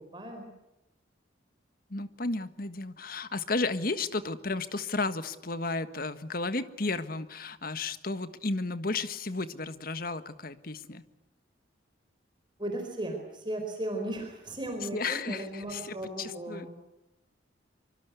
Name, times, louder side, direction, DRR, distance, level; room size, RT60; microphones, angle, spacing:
voice 1, 0.1-0.5 12.6-16.7, right 1 dB, 25° right, 3 dB, 4.4 m, -36 dB
voice 2, 1.9-11.0 14.9-16.7, left 3 dB, 50° left, 11 dB, 1.5 m, -33 dB
25.5 x 24.5 x 8.2 m, 0.92 s
head